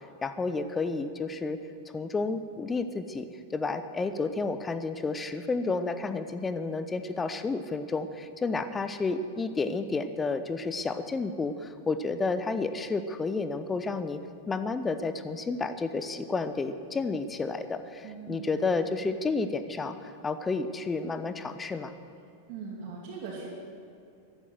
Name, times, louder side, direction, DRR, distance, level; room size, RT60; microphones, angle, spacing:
voice 1, 0.0-1.6 1.9-14.2 14.5-21.9, left 3 dB, 15° left, 11 dB, 0.8 m, -31 dB
voice 2, 18.0-18.7 22.5-23.5, right 5 dB, 45° right, -6 dB, 2.9 m, -40 dB
14.5 x 12.0 x 7.7 m, 2.4 s
figure-of-eight pair, 90°, 0 cm